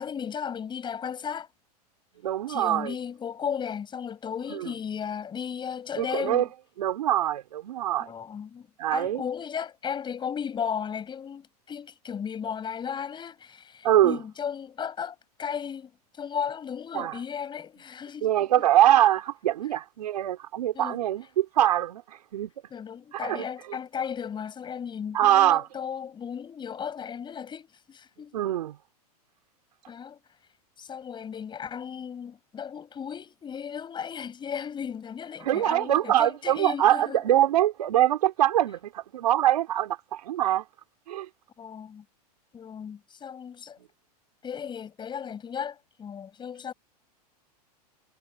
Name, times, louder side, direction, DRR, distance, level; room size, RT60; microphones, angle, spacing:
voice 1, 0.0-1.5 2.5-6.5 8.0-18.7 20.7-21.0 22.7-28.4 29.9-30.2 30.8-37.3 41.6-42.0 42.5-43.8 44.4-46.7, left 7 dB, 20° left, 5.9 m, -35 dB
voice 2, 2.2-2.9 4.5-4.6 6.0-6.5 6.8-8.1 8.8-9.2 13.8-14.2 16.9-17.2 18.2-22.5 23.1-23.4 25.1-25.7 28.3-28.8 35.4-40.7 41.1-41.3, right 12 dB, 75° right, 4.0 m, -23 dB
hypercardioid pair, 115°, 20 cm